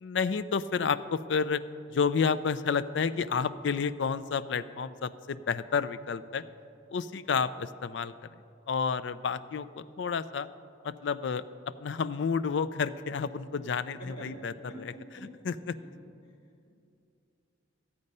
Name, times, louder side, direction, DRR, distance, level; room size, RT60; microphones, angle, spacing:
voice 1, 0.0-1.6 1.9-6.4 6.9-8.1 8.7-10.5 10.8-11.4 11.8-14.5 15.4-15.8, left 5 dB, 70° left, 14 dB, 0.4 m, -30 dB
voice 2, 14.0-15.9 16.2-16.3, equal, 25° left, -6 dB, 3.0 m, -47 dB
13.0 x 8.6 x 5.4 m, 2.6 s
head